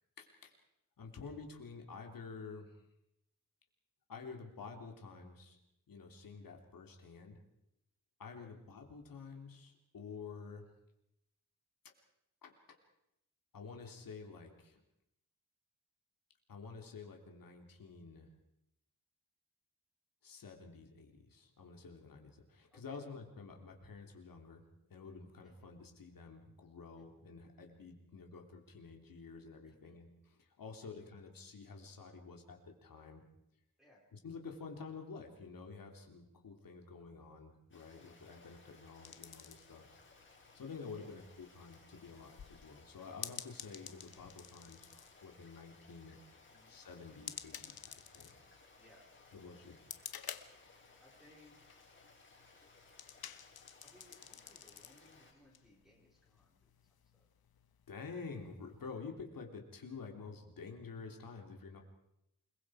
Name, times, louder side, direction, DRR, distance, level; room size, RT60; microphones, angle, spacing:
voice 1, 0.2-0.5 1.0-2.7 4.1-5.6 5.9-7.4 8.2-10.6 12.4-12.5 13.5-14.8 16.5-18.3 20.2-24.6 24.9-30.1 30.4-33.2 34.1-39.8 40.5-46.2 46.7-48.3 49.3-49.8 57.9-61.8, left 4 dB, 65° left, 3 dB, 3.1 m, -50 dB
voice 2, 6.3-6.6 8.4-8.5 22.7-23.1 25.4-25.7 27.0-27.2 29.6-30.1 30.6-31.0 33.8-34.0 40.9-41.3 46.5-46.8 48.8-49.1 51.0-51.6 53.7-56.8 57.1-57.2, left 1 dB, ahead, -4 dB, 4.6 m, -65 dB
Stream, 37.7-55.3, left 3 dB, 35° left, 4.7 m, -62 dB
sound 1, 39.0-58.9, left 9 dB, 85° left, 1.4 m, -53 dB
29.0 x 21.0 x 4.9 m, 0.81 s
wide cardioid pair, 170°, 36 cm